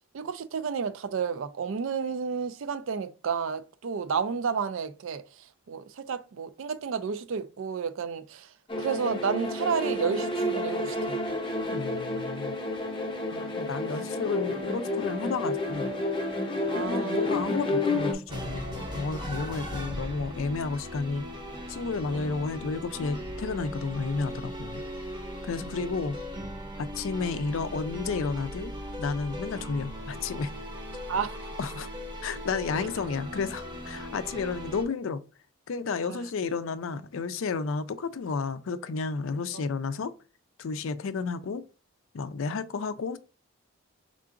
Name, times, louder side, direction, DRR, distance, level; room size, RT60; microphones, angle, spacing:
voice 1, 0.1-5.2 5.7-8.5 8.8-11.2 16.7-17.3 22.1-22.4 25.7-26.1 31.1-31.4 36.0-36.2 39.5-39.7, right 6 dB, 60° right, 0.4 m, -31 dB
sound 1, 8.7-18.1, left 1 dB, 20° left, 0.7 m, -30 dB
voice 2, 11.7-12.5 13.3-15.9 16.7-21.2 21.7-24.8 25.4-26.2 26.8-28.7 29.0-30.5 31.6-31.9 32.2-35.2 35.7-40.1 40.6-41.6 42.1-43.2, left 4 dB, 65° left, 0.4 m, -32 dB
sound 2, 18.3-34.9, equal, 20° right, 0.7 m, -38 dB
4.7 x 3.7 x 2.5 m
head